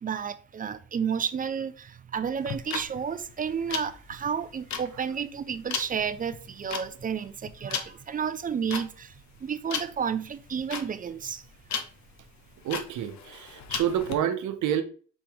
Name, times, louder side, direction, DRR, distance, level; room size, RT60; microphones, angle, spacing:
voice 1, 0.0-11.5, right 7 dB, 30° right, 0.4 m, -31 dB
sound 1, 2.4-14.1, left 6 dB, 65° left, 0.8 m, -36 dB
voice 2, 12.6-14.8, right 10 dB, 80° right, 0.8 m, -28 dB
5.3 x 2.9 x 3.4 m
cardioid pair, 90°, 30 cm